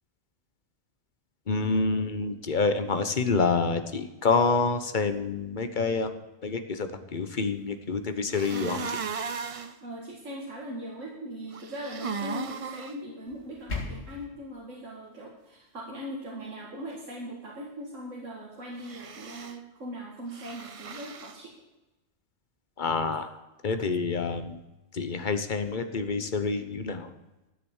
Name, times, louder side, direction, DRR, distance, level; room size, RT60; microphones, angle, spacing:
voice 1, 1.5-6.1 6.4-9.0 22.8-23.4 23.6-24.6 24.9-27.1, left 4 dB, 40° left, 9 dB, 1.1 m, -27 dB
sound 1, 8.3-9.7 11.5-12.9 18.8-19.6 20.3-21.4, right 5 dB, 40° right, 0.5 m, -36 dB
voice 2, 9.8-21.5, equal, 75° right, -4 dB, 2.4 m, -40 dB
sound 2, 13.3-14.3, left 3 dB, 60° left, 2.7 m, -36 dB
13.5 x 7.9 x 7.3 m, 1.0 s
omnidirectional pair, 1.3 m